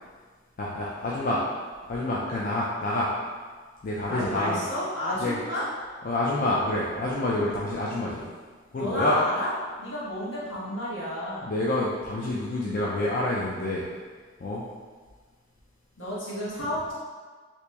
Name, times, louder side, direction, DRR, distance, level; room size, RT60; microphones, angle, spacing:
voice 1, 0.6-1.4 1.9-3.1 3.8-4.6 5.2-5.4 6.0-8.3 8.7-9.2 11.4-13.9 14.4-14.6, left 1 dB, 40° left, -5 dB, 0.3 m, -27 dB
voice 2, 4.1-5.6 8.8-9.5 9.8-11.5 16.0-16.9, equal, 70° left, -8 dB, 1.2 m, -31 dB
2.9 x 2.9 x 3.3 m, 1.5 s
head